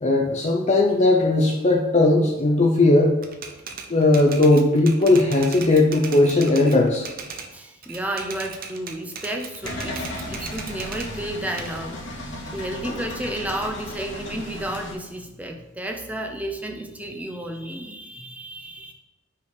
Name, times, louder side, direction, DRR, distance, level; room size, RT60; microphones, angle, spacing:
voice 1, 0.0-3.2 3.9-7.1 12.8-13.0, left 2 dB, 35° left, 0 dB, 0.7 m, -18 dB
Typewriter, 3.2-7.5 7.8-11.1 11.6-13.2, right 5 dB, 45° right, 0.8 m, -38 dB
voice 2, 7.5-12.0 12.5-18.9, right 1 dB, 5° right, 3 dB, 0.7 m, -32 dB
sound 1, 9.6-14.9, left 1 dB, 60° left, 1.5 m, -35 dB
5.6 x 4.9 x 6.5 m, 1.0 s
head